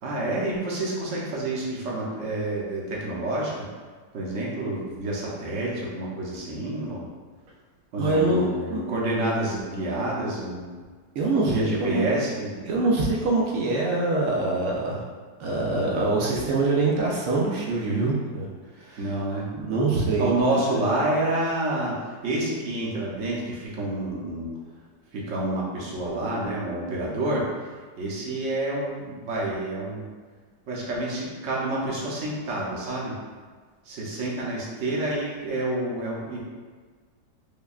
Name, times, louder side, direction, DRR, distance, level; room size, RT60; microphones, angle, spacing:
voice 1, 0.0-3.7 4.1-7.1 7.9-10.7 11.5-12.6 19.0-19.5 20.2-24.5 25.1-27.7 28.0-30.1 30.7-33.2 33.8-36.4, right 2 dB, 60° right, -5 dB, 0.9 m, -28 dB
voice 2, 8.0-8.8 11.2-12.1 12.6-15.0 15.4-18.5 18.8-19.0 19.6-20.3 20.7-20.9, right 2 dB, 80° right, -4 dB, 0.6 m, -24 dB
5.1 x 2.2 x 2.3 m, 1.5 s
omnidirectional pair, 1.9 m